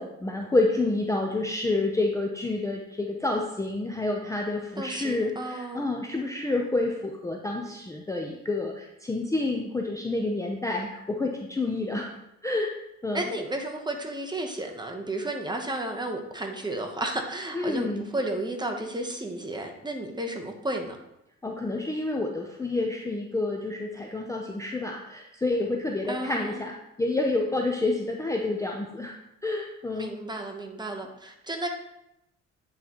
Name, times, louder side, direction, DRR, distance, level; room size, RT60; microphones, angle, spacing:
voice 1, 0.0-12.1 12.4-12.7 13.0-13.3 17.5-18.1 21.4-29.1 29.4-30.1, left 2 dB, 10° left, 1 dB, 0.5 m, -29 dB
voice 2, 4.8-5.9 13.1-21.0 26.1-26.6 29.9-31.7, right 1 dB, 15° right, 3 dB, 0.9 m, -33 dB
8.9 x 3.9 x 3.0 m, 0.85 s
cardioid pair, 90°, 30 cm